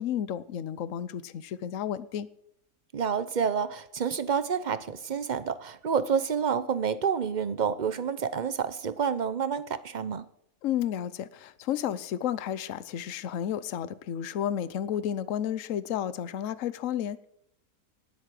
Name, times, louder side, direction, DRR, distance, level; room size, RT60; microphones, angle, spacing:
voice 1, 0.0-2.3 10.6-17.3, left 10 dB, 60° left, 1.1 m, -32 dB
voice 2, 2.9-10.3, right 6 dB, 45° right, 0.6 m, -29 dB
19.0 x 8.2 x 7.6 m
omnidirectional pair, 1.7 m